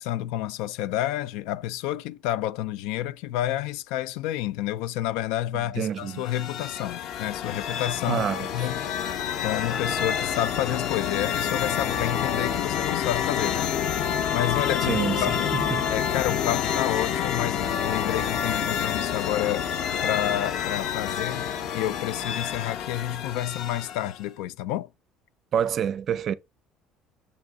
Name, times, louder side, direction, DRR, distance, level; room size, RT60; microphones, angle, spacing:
voice 1, 0.0-8.3 8.5-8.9 9.4-15.5 15.9-19.7 20.0-24.9, left 13 dB, 85° left, 0.5 m, -29 dB
voice 2, 5.5-6.2 8.1-8.7 14.9-15.8 25.5-26.3, right 8 dB, 35° right, 0.5 m, -28 dB
sound 1, 6.0-24.2, left 8 dB, 50° left, 0.8 m, -28 dB
6.6 x 5.3 x 3.6 m
cardioid pair, 170°, 0 cm